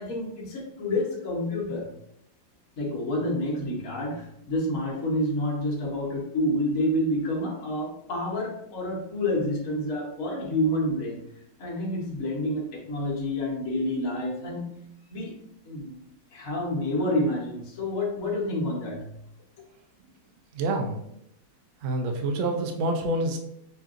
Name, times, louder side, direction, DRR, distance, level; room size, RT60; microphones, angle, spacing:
voice 1, 0.0-1.9 2.8-11.2 11.6-14.7 15.1-15.4 15.6-16.0 16.3-19.1, left 1 dB, 50° left, -3 dB, 1.4 m, -28 dB
voice 2, 20.5-21.0 21.8-23.4, right 2 dB, 85° right, 3 dB, 0.6 m, -27 dB
5.5 x 2.5 x 2.5 m, 0.76 s
omnidirectional pair, 2.1 m